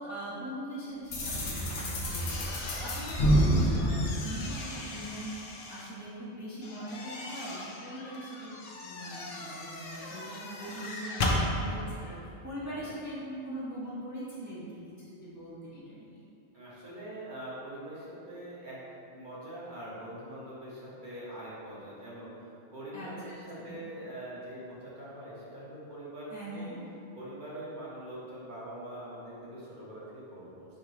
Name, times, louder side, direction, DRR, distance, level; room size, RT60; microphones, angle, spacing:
voice 1, 0.0-5.4 5.7-12.1 12.4-16.2 22.9-23.4 23.6-23.8 26.3-26.8, right 1 dB, 20° right, -10 dB, 0.7 m, -41 dB
sound 1, 1.1-5.0, equal, 80° left, 1.0 m, -28 dB
sound 2, 1.7-5.9 6.6-11.4, left 2 dB, 60° left, 0.7 m, -38 dB
voice 2, 11.3-12.3 12.6-12.9 16.5-18.8 19.1-26.7 27.1-30.8, right 1 dB, 45° right, -9 dB, 1.2 m, -44 dB
4.5 x 3.6 x 3.1 m, 2.7 s
omnidirectional pair, 1.2 m